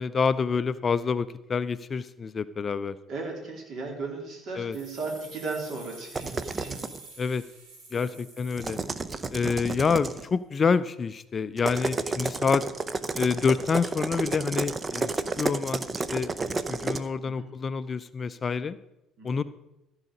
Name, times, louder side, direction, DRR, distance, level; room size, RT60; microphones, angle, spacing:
voice 1, 0.0-3.0 4.6-4.8 7.2-7.4 7.9-8.8 9.3-12.6 13.1-15.1 15.4-18.8 19.2-19.4, left 5 dB, 35° left, 15 dB, 0.4 m, -27 dB
voice 2, 3.1-6.8 7.9-8.1 16.9-17.4 19.2-19.4, right 3 dB, 50° right, 0 dB, 3.3 m, -36 dB
sound 1, 4.7-9.5, right 3 dB, 65° right, 3.3 m, -49 dB
sound 2, 6.2-7.0 8.5-10.3 11.6-17.0, right 3 dB, 30° right, 0.7 m, -31 dB
14.5 x 4.9 x 6.5 m, 0.90 s
figure-of-eight pair, 55°, 0 cm